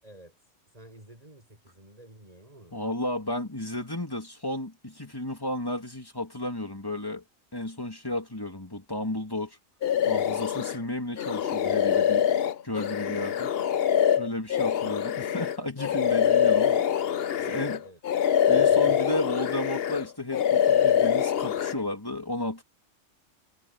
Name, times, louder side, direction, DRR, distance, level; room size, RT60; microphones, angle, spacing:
voice 1, 0.0-2.8 17.4-18.0 18.5-19.0, right 1 dB, 30° right, 7.0 m, -51 dB
voice 2, 2.7-7.2 7.5-9.6 10.1-12.3 12.6-13.5 14.2-16.8 17.5-17.8 18.5-22.6, left 1 dB, 20° left, 2.4 m, -33 dB
sound 1, 9.8-10.8 11.2-17.8 18.0-20.0 20.3-21.7, left 8 dB, 60° left, 0.9 m, -24 dB
omnidirectional pair, 1.3 m